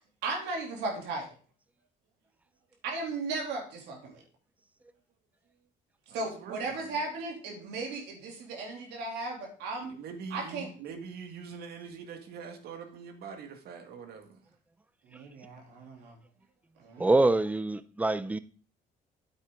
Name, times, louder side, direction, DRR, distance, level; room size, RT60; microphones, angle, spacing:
voice 1, 0.2-1.3 2.8-4.2 6.1-9.9 10.3-10.7 15.1-16.2 16.8-17.1, right 3 dB, 85° right, 3.0 m, -36 dB
voice 2, 6.1-7.1 9.9-14.4, right 5 dB, 70° right, 1.8 m, -44 dB
voice 3, 17.0-18.4, right 2 dB, 10° right, 0.6 m, -25 dB
9.1 x 8.0 x 3.7 m
cardioid pair, 110°, 17 cm